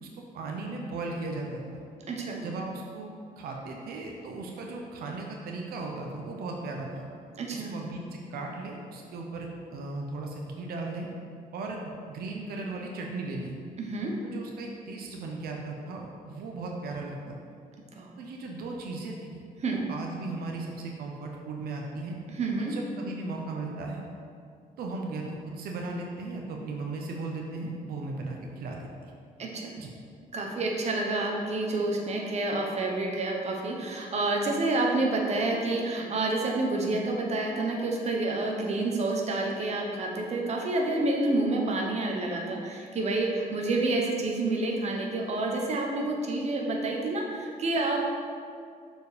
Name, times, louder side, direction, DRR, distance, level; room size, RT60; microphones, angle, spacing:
voice 1, 0.3-1.8 2.4-3.1 3.4-7.0 7.5-11.1 11.5-13.6 14.2-17.4 18.2-19.4 19.7-22.2 22.6-24.0 24.8-29.1 29.8-29.9, right 3 dB, 85° right, 0 dB, 0.8 m, -37 dB
voice 2, 2.1-2.4 7.4-7.7 13.8-14.1 18.0-18.1 19.6-19.8 22.3-22.7 29.4-29.7 30.3-48.0, right 2 dB, 45° right, 0 dB, 1.1 m, -28 dB
6.9 x 4.6 x 5.0 m, 2.3 s
cardioid pair, 125°, 15 cm